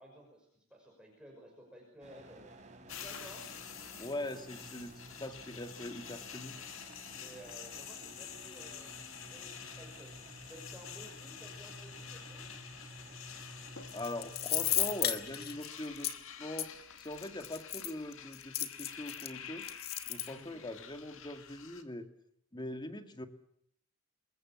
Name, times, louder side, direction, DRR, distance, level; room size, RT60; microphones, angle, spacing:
voice 1, 0.0-2.5 2.9-3.4 7.1-10.1 10.5-12.5 20.3-20.7, right 1 dB, 5° right, -2 dB, 5.9 m, -55 dB
sound 1, 2.0-15.6, right 1 dB, 35° right, 4.0 m, -53 dB
sound 2, 2.9-21.8, left 8 dB, 65° left, 2.2 m, -48 dB
voice 2, 4.0-4.9 5.2-6.5 13.9-16.1 16.4-19.7 20.1-22.1 22.5-23.3, left 1 dB, 20° left, 8 dB, 1.9 m, -42 dB
sound 3, 13.9-16.1 16.6-16.7 17.2-19.3 19.6-20.3, left 12 dB, 50° left, 1.7 m, -34 dB
27.5 x 21.5 x 7.4 m, 0.69 s
head